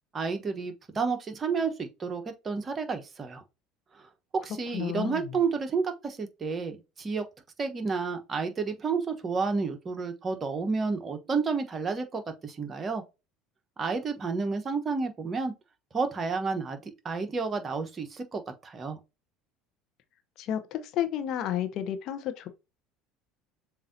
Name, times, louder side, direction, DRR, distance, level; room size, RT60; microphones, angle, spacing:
voice 1, 0.1-3.4 4.3-7.2 7.6-13.0 13.8-15.5 15.9-19.0, right 4 dB, 30° right, 1.0 m, -31 dB
voice 2, 4.7-5.3 20.4-22.5, left 10 dB, 55° left, 0.8 m, -31 dB
6.9 x 2.6 x 2.7 m
hypercardioid pair, 70°, 0 cm